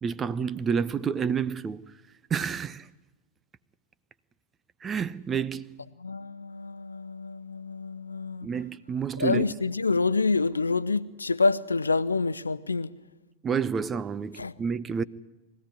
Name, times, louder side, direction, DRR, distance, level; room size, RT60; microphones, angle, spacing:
voice 1, 0.0-1.9 2.3-2.9 4.8-5.8 8.4-9.4 13.4-15.0, right 6 dB, 20° right, 0.7 m, -29 dB
voice 2, 6.0-8.5 9.2-12.9 14.4-14.5, left 3 dB, 80° left, 0.8 m, -27 dB
23.5 x 16.0 x 10.0 m
figure-of-eight pair, 90°, 0 cm